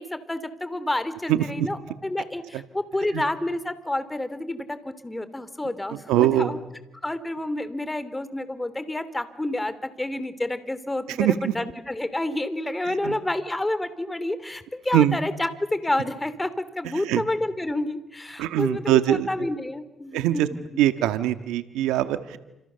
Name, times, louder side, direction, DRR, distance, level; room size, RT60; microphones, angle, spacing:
voice 1, 0.0-6.6 7.0-20.4 21.0-21.1, left 1 dB, 15° left, 13 dB, 2.9 m, -29 dB
voice 2, 1.3-1.7 3.1-3.2 6.1-6.5 11.2-11.5 12.9-13.2 14.9-15.2 17.1-17.2 18.4-19.3 20.1-20.5 20.8-22.4, right 13 dB, 90° right, 10 dB, 1.6 m, -22 dB
29.5 x 27.5 x 7.0 m, 0.97 s
cardioid pair, 80°, 0 cm